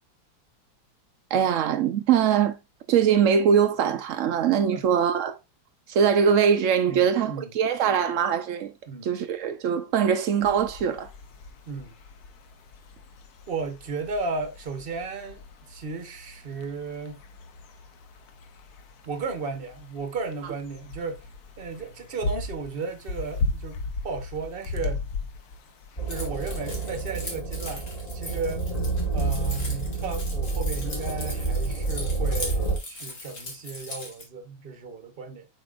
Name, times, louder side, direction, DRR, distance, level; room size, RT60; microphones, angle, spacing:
voice 1, 1.3-2.6 2.9-5.4 5.9-8.7 9.0-11.1, right 7 dB, 85° right, 0.6 m, -22 dB
voice 2, 6.9-7.5 8.9-9.1 11.7-11.9 13.5-17.2 19.0-21.3 21.6-23.8 24.0-25.0 26.1-27.9 28.1-28.7 29.1-35.5, right 4 dB, 40° right, 1.0 m, -34 dB
sound 1, 10.4-27.0, left 3 dB, 60° left, 1.3 m, -37 dB
sound 2, 26.0-32.8, right 3 dB, 20° left, 1.5 m, -29 dB
Keys jangling, 26.1-34.2, left 2 dB, 40° left, 2.3 m, -39 dB
7.4 x 5.2 x 2.4 m
omnidirectional pair, 2.0 m